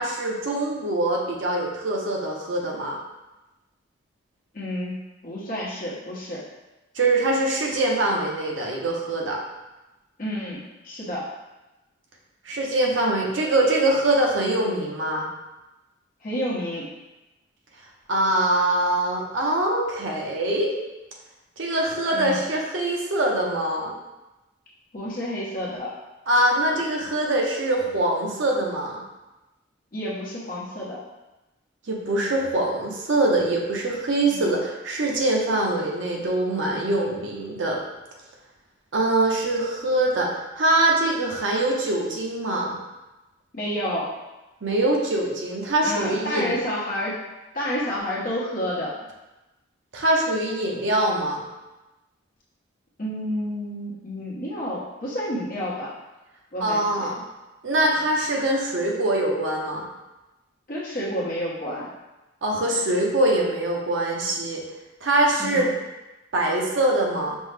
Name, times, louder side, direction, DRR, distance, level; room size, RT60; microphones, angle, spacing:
voice 1, 0.0-3.0 6.9-9.4 12.4-15.3 18.1-20.7 21.6-23.9 26.3-29.0 31.9-37.8 38.9-40.3 40.6-42.8 44.6-46.6 49.9-51.4 56.6-57.2 57.6-59.9 62.4-64.6 65.0-65.7 66.3-67.4, right 1 dB, 70° right, -1 dB, 0.7 m, -23 dB
voice 2, 4.5-6.4 10.2-10.6 10.8-11.3 16.2-16.9 22.1-22.4 24.9-25.9 29.9-31.0 34.3-34.5 43.5-44.1 45.8-47.2 47.5-48.9 53.0-55.9 56.5-57.2 60.7-61.9 65.4-65.7, equal, 45° left, -6 dB, 0.9 m, -30 dB
5.3 x 2.1 x 3.3 m, 1.0 s
head